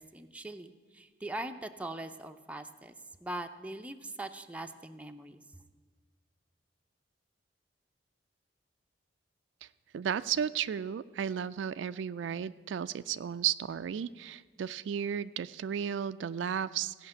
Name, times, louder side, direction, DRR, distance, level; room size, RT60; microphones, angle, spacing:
voice 1, 0.0-2.9 3.2-5.4, right 1 dB, 5° right, 6 dB, 0.5 m, -41 dB
voice 2, 9.9-17.1, right 8 dB, 75° right, 14 dB, 0.3 m, -34 dB
16.0 x 5.8 x 8.7 m, 1.4 s
head